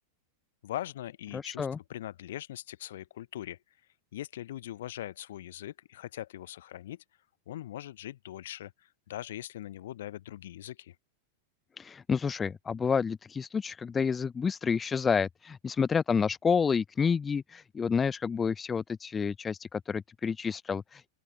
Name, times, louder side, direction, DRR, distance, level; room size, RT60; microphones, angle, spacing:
voice 1, 0.6-3.6 4.1-7.0 7.5-11.0, left 13 dB, 60° left, 1.9 m, -41 dB
voice 2, 1.3-1.8 11.8-21.0, left 6 dB, 20° left, 0.5 m, -29 dB
open air
figure-of-eight pair, 90°, 0 cm